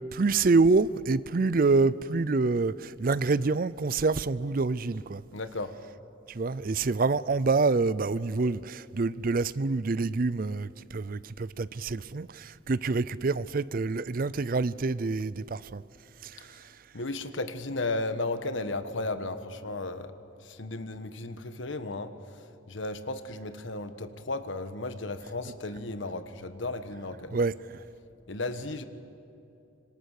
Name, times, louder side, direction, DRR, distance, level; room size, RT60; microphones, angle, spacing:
voice 1, 0.1-5.2 6.3-15.8 16.2-16.6 27.3-27.8, right 3 dB, 45° right, 0.5 m, -27 dB
voice 2, 5.3-5.7 16.9-20.1 20.4-27.4 28.3-28.8, left 2 dB, 75° left, 1.3 m, -34 dB
26.0 x 25.0 x 6.6 m
head